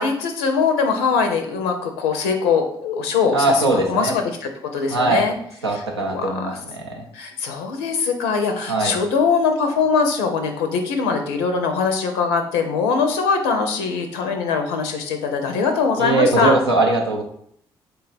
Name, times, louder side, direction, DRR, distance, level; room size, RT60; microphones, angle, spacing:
voice 1, 0.0-3.5 3.9-5.3 5.7-6.6 7.1-16.6, left 5 dB, 75° left, 5 dB, 0.4 m, -22 dB
voice 2, 3.3-4.1 4.9-5.3 5.6-7.0 8.7-9.0 16.0-17.2, right 2 dB, 90° right, 0 dB, 0.5 m, -20 dB
3.8 x 2.3 x 4.0 m, 0.68 s
figure-of-eight pair, 40°, 13 cm